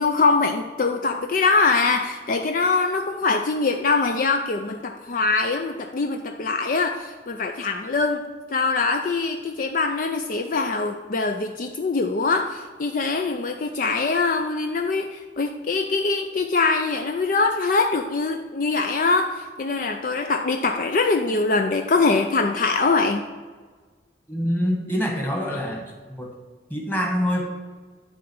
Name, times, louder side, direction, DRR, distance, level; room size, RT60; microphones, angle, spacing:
voice 1, 0.0-23.2, left 3 dB, 50° left, 5 dB, 0.5 m, -23 dB
voice 2, 24.3-25.8 26.2-26.3 26.7-27.4, equal, 10° left, 0 dB, 1.6 m, -25 dB
10.5 x 3.9 x 7.0 m, 1.5 s
head